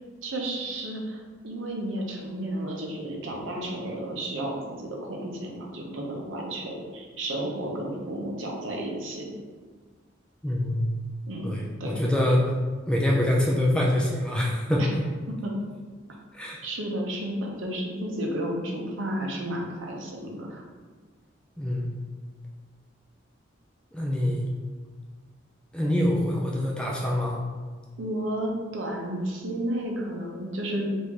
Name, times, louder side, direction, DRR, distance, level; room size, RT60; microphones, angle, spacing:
voice 1, 0.2-9.3 11.3-11.5 11.8-11.9 14.8-14.9 15.3-15.5 16.6-20.6 28.0-30.9, right 1 dB, 70° right, -1 dB, 0.6 m, -32 dB
voice 2, 10.4-10.9 11.4-12.5 12.9-14.9 16.3-16.6 21.6-21.9 23.9-24.5 25.7-27.4, left 1 dB, 5° left, -3 dB, 0.4 m, -25 dB
3.0 x 2.6 x 3.5 m, 1.5 s
head